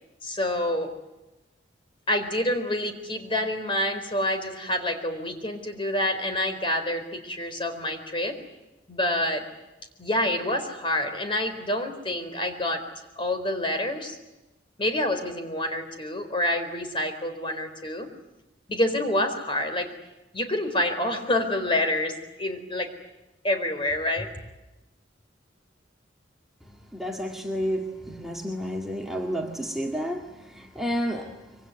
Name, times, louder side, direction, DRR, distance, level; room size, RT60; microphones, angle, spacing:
voice 1, 0.2-0.9 2.1-8.3 8.9-9.4 10.0-12.8 13.2-14.2 14.8-18.1 18.7-19.9 20.3-22.9 23.4-24.3, left 1 dB, 30° left, 4.3 m, -27 dB
voice 2, 26.9-31.4, equal, ahead, 2.0 m, -30 dB
26.0 x 24.0 x 9.6 m
head